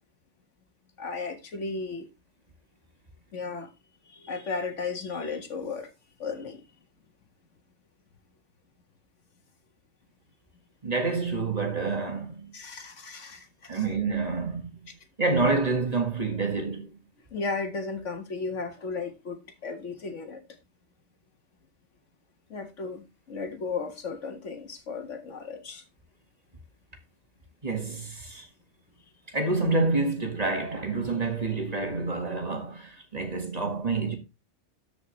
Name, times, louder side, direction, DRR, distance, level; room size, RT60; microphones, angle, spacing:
voice 1, 1.0-2.1 3.3-3.7 4.1-5.9 6.2-6.6 12.5-13.8 17.3-20.4 22.5-25.8, left 4 dB, 80° left, 1.8 m, -35 dB
voice 2, 10.8-12.5 13.7-14.7 15.2-17.0 27.6-28.5 29.3-34.2, right 3 dB, 35° right, 1.8 m, -28 dB
14.0 x 5.2 x 3.2 m
omnidirectional pair, 1.2 m